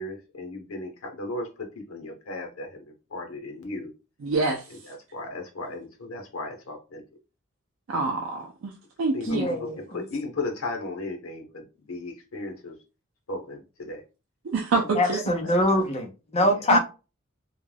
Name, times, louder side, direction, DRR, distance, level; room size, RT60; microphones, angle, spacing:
voice 1, 0.0-2.8 3.1-3.9 4.7-7.0 9.1-12.7 13.3-14.0 14.7-14.9 15.4-15.6 16.4-16.5, left 2 dB, 85° left, 0.8 m, -36 dB
voice 2, 4.2-4.6 7.9-8.7 9.0-9.5 14.4-15.2 16.7-16.8, right 3 dB, 65° right, 0.4 m, -26 dB
voice 3, 9.3-10.0 15.0-16.8, left 1 dB, 30° left, 0.6 m, -24 dB
2.3 x 2.2 x 3.2 m
head